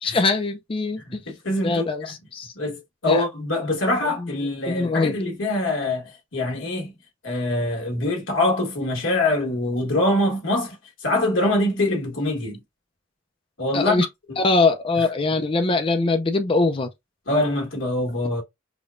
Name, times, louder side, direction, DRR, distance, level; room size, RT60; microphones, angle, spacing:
voice 1, 0.0-1.2 1.6-2.5 3.0-3.2 4.2-4.3 4.7-5.2 13.7-14.1 14.4-16.9, left 3 dB, 25° left, 0.4 m, -22 dB
voice 2, 1.1-1.9 2.5-6.0 6.3-6.9 7.2-10.8 11.0-12.6 13.6-14.0 17.3-18.4, left 2 dB, 75° left, 1.5 m, -24 dB
5.0 x 2.2 x 2.5 m
head